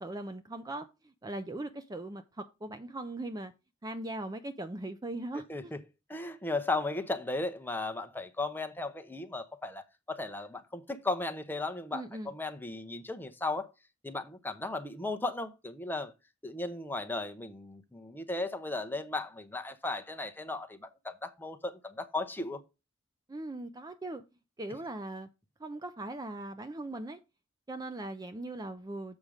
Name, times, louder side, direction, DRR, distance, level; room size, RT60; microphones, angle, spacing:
voice 1, 0.0-3.5 3.8-5.7 11.9-12.3 23.3-24.2 24.6-25.3 25.6-27.2 27.7-29.2, right 2 dB, 20° right, 0.4 m, -40 dB
voice 2, 5.5-5.8 6.1-13.7 14.0-16.1 16.4-22.6, left 2 dB, 10° left, 0.7 m, -36 dB
7.3 x 5.2 x 4.9 m
head